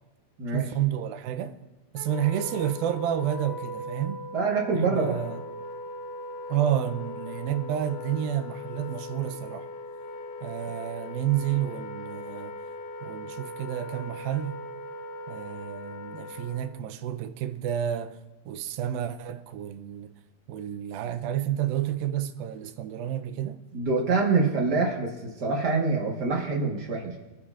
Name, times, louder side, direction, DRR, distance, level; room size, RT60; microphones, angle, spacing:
voice 1, 0.5-1.6 1.9-4.2 4.9-5.4 6.5-9.7 10.4-12.6 13.0-14.6 15.3-18.2 18.5-20.1 20.5-23.6, right 11 dB, 85° right, 2.4 m, -30 dB
Wind instrument woodwind instrument, 2.0-16.8, left 2 dB, 75° left, 2.4 m, -39 dB
voice 2, 4.3-5.2 23.7-27.1, right 4 dB, 65° right, 1.0 m, -25 dB
23.0 x 9.9 x 2.5 m
omnidirectional pair, 4.1 m